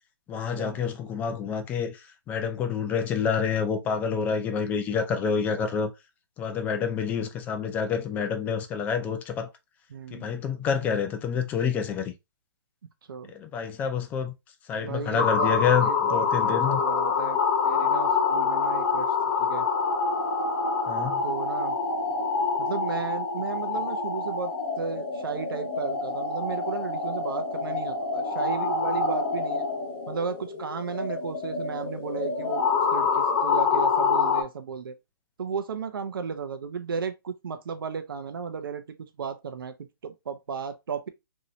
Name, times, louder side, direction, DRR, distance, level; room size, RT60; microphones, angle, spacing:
voice 1, 0.3-2.0 2.3-5.9 6.4-9.5 10.1-12.1 13.3-14.3 14.7-16.8 20.9-21.2, left 6 dB, 15° left, 0.4 m, -28 dB
voice 2, 9.9-10.4 13.1-13.3 14.8-17.4 17.6-19.7 21.2-21.8 22.6-29.6 30.1-32.6 32.9-34.9 35.4-41.1, right 6 dB, 75° right, 0.5 m, -34 dB
sound 1, 15.2-34.4, left 5 dB, 35° left, 0.8 m, -26 dB
3.0 x 2.7 x 2.7 m
hypercardioid pair, 140°, 12 cm